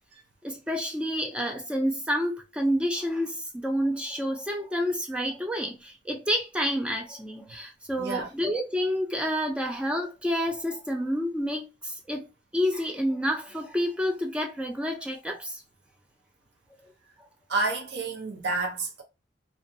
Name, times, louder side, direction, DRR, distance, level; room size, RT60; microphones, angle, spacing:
voice 1, 0.4-12.3 12.5-15.6, equal, 5° right, 0.4 m, -29 dB
voice 2, 8.0-8.3 17.5-19.0, right 3 dB, 65° right, 0.6 m, -29 dB
2.3 x 2.2 x 2.6 m
head